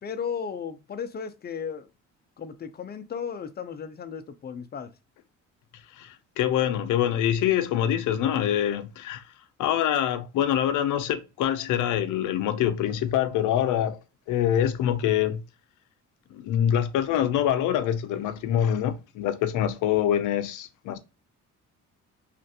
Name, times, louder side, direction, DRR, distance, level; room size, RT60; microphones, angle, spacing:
voice 1, 0.0-1.9 2.4-4.9, left 7 dB, 35° left, 0.5 m, -35 dB
voice 2, 5.9-9.2 9.6-14.0 14.3-15.4 16.3-21.0, left 10 dB, 80° left, 0.5 m, -25 dB
3.2 x 2.5 x 2.7 m
cardioid pair, 90°, 30 cm